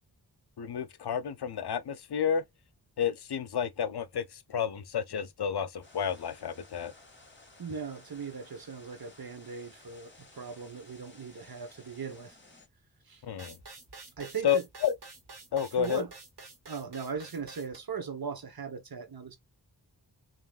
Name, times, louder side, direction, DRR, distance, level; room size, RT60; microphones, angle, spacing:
voice 1, 0.6-2.4 3.0-6.9 13.2-13.6 14.4-14.9 15.5-16.0, left 8 dB, 70° left, 0.7 m, -31 dB
sound 1, 5.8-12.7, left 2 dB, 30° left, 2.5 m, -56 dB
voice 2, 7.6-12.4 13.1-13.2 14.2-14.6 15.8-16.1 16.7-19.4, right 6 dB, 60° right, 1.2 m, -39 dB
sound 2, 13.4-17.8, right 3 dB, 80° right, 2.1 m, -49 dB
5.1 x 3.0 x 2.4 m
wide cardioid pair, 70°, 40 cm